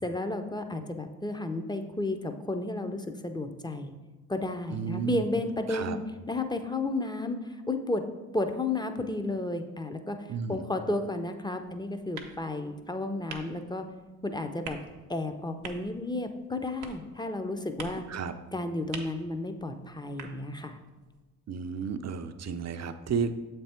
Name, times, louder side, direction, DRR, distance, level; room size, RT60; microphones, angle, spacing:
voice 1, 0.0-3.9 4.3-6.0 6.3-8.0 8.3-13.8 14.2-14.8 15.1-18.0 18.5-20.8, left 2 dB, 10° left, 7 dB, 0.6 m, -32 dB
voice 2, 4.7-5.3 5.7-6.0 10.3-10.6 18.1-18.3 21.5-23.3, right 6 dB, 40° right, 9 dB, 0.6 m, -32 dB
sound 1, 11.6-21.2, right 6 dB, 80° right, 0.8 m, -48 dB
7.2 x 3.4 x 4.3 m, 1.2 s
hypercardioid pair, 45°, 42 cm